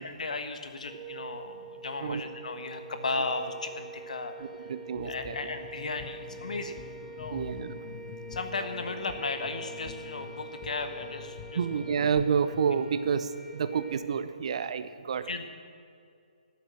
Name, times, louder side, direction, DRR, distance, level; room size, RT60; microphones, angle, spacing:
voice 1, 0.0-4.3 5.0-6.8 7.1-7.4 8.3-11.6 15.2-15.4, left 3 dB, 65° left, 7 dB, 1.3 m, -35 dB
sound 1, 0.9-14.0, right 4 dB, 10° left, 1.9 m, -45 dB
voice 2, 4.4-5.4 7.3-7.8 11.5-15.3, right 6 dB, 50° right, 12 dB, 0.7 m, -29 dB
sound 2, 4.9-12.7, left 8 dB, 30° left, 0.6 m, -46 dB
12.5 x 8.7 x 7.6 m, 2.4 s
figure-of-eight pair, 135°, 4 cm